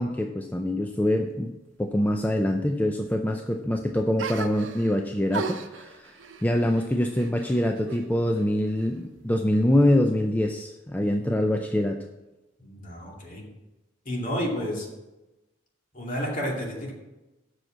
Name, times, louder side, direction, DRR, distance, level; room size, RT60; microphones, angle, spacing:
voice 1, 0.0-1.5 1.8-6.1 6.4-12.0, left 1 dB, 10° left, 4 dB, 0.4 m, -24 dB
sound 1, 4.2-5.0 5.3-8.0 8.4-9.2, right 5 dB, 80° right, 0.9 m, -36 dB
voice 2, 12.6-13.4 14.0-14.9 15.9-16.9, equal, 45° left, -1 dB, 2.4 m, -31 dB
7.9 x 6.4 x 7.3 m, 1.0 s
head